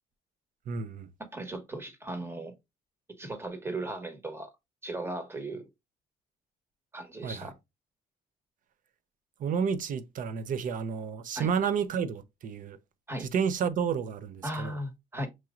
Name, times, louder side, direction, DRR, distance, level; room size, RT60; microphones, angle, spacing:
voice 1, 0.7-1.1 7.2-7.5 9.4-12.8 13.2-14.7, right 6 dB, 50° right, 0.7 m, -31 dB
voice 2, 1.3-2.5 3.2-4.5 4.8-5.7 6.9-7.5 11.3-11.5 13.1-13.3 14.4-15.3, right 1 dB, 15° right, 1.2 m, -37 dB
6.1 x 2.8 x 2.4 m
cardioid pair, 110°, 17 cm